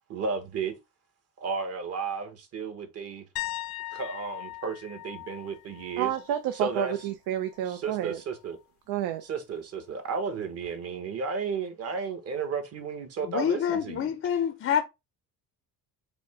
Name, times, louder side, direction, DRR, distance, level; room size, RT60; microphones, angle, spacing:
voice 1, 0.1-0.7 1.4-3.2 3.9-6.1 6.5-6.9 7.6-8.6 9.2-14.1, right 5 dB, 40° right, 1.2 m, -33 dB
sound 1, 3.4-7.1 7.4-7.8 10.7-10.8, left 16 dB, 80° left, 0.6 m, -40 dB
voice 2, 6.0-8.2 8.9-9.2, right 11 dB, 90° right, 0.6 m, -30 dB
voice 3, 13.3-14.8, left 8 dB, 35° left, 0.5 m, -27 dB
5.1 x 2.1 x 4.8 m
cardioid pair, 145°, 36 cm